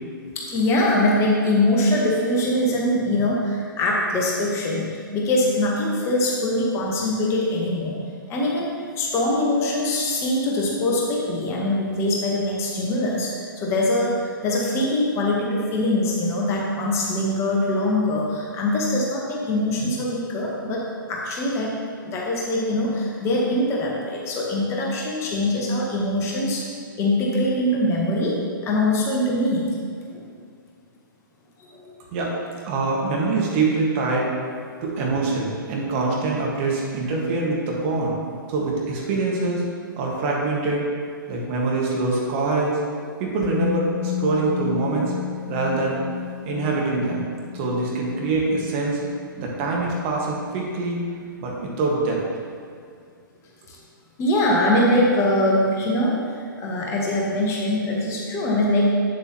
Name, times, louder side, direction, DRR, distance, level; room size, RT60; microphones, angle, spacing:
voice 1, 0.3-8.0 8.3-20.8 21.1-21.7 22.0-26.6 27.0-28.4 28.6-29.8 30.1-30.2 31.6-31.9 53.7-53.8 54.2-58.9, left 1 dB, 25° left, -3 dB, 1.2 m, -23 dB
voice 2, 32.6-34.3 34.8-38.2 38.5-39.6 40.0-40.8 41.3-42.8 43.2-45.1 45.5-46.0 46.4-47.2 47.5-49.0 49.4-51.0 51.4-52.2, right 3 dB, 35° right, -2 dB, 1.5 m, -24 dB
Musical instrument, 43.4-51.3 51.6-51.8, left 12 dB, ahead, 0.5 m, -33 dB
8.2 x 7.4 x 3.0 m, 2.2 s
figure-of-eight pair, 120°, 12 cm